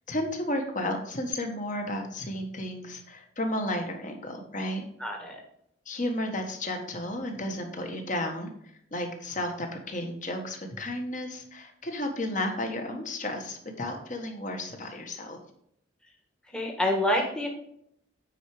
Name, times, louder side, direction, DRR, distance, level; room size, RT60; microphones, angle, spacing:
voice 1, 0.1-4.8 5.8-8.5 8.9-15.4, left 1 dB, 40° left, 4 dB, 1.5 m, -33 dB
voice 2, 5.0-5.4 16.5-17.5, left 1 dB, 5° left, 0 dB, 1.2 m, -27 dB
9.1 x 4.9 x 4.9 m, 0.73 s
head